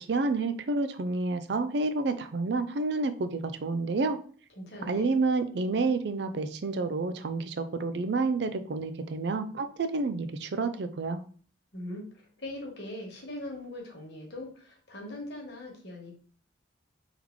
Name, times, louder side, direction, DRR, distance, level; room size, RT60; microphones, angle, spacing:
voice 1, 0.0-4.2 4.8-11.2, right 3 dB, 65° right, 9 dB, 0.4 m, -29 dB
voice 2, 4.6-5.1 11.7-12.0 12.4-16.1, left 1 dB, 60° left, 0 dB, 1.3 m, -40 dB
3.6 x 3.1 x 3.6 m, 0.44 s
head